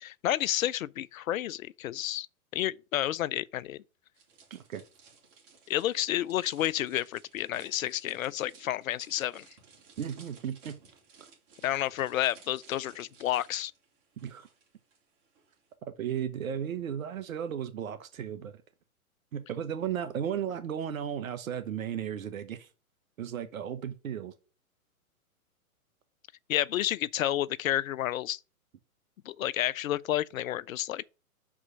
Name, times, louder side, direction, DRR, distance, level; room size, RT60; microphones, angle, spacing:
voice 1, 0.2-2.3 2.5-3.8 5.7-9.4 11.6-13.7 26.5-28.4 29.3-31.1, left 13 dB, 65° left, 0.6 m, -30 dB
sound 1, 4.2-15.0 15.2-15.5, right 5 dB, 40° right, 4.1 m, -57 dB
voice 2, 4.5-4.8 10.0-10.7 14.2-14.5 16.0-18.6 19.3-22.7 23.2-24.3, right 9 dB, 65° right, 1.0 m, -35 dB
6.1 x 4.9 x 5.5 m
hypercardioid pair, 130°, 43 cm